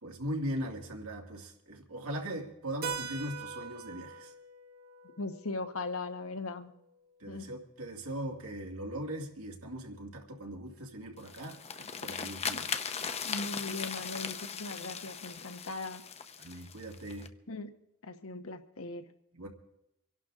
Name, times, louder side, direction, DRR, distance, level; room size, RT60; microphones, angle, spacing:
voice 1, 0.0-4.3 7.2-12.7 16.4-17.3 19.4-19.5, equal, 70° right, 2.4 m, -39 dB
Keyboard (musical), 2.8-7.3, right 5 dB, 45° right, 1.4 m, -43 dB
voice 2, 5.2-6.7 7.3-7.5 12.5-12.7 13.2-16.0 17.5-17.7 18.0-19.0, left 3 dB, 70° left, 1.2 m, -39 dB
sound 1, 11.2-17.3, left 6 dB, 30° left, 0.7 m, -38 dB
26.0 x 11.5 x 3.7 m
head